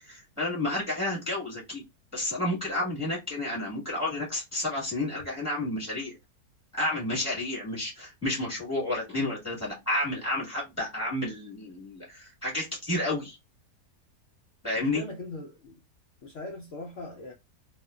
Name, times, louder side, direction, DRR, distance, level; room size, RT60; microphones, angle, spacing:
voice 1, 0.0-1.8 2.1-6.1 6.7-13.4 14.6-15.0, left 1 dB, 5° right, 1.0 m, -31 dB
voice 2, 14.7-15.8 16.2-17.3, left 2 dB, 75° left, 0.6 m, -40 dB
2.9 x 2.2 x 2.2 m
omnidirectional pair, 1.9 m